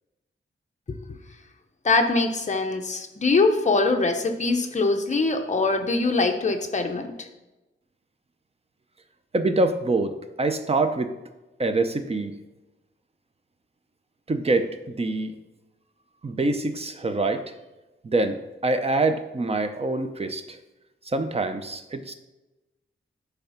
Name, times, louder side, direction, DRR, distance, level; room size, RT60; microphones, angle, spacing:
voice 1, 1.8-7.3, left 3 dB, 35° left, 4 dB, 0.8 m, -23 dB
voice 2, 9.3-11.1 11.6-12.3 14.3-15.3 16.2-17.5 18.0-20.6 21.0-22.1, right 2 dB, 30° right, 8 dB, 0.6 m, -25 dB
10.5 x 3.5 x 5.7 m, 1.1 s
wide cardioid pair, 180°, 21 cm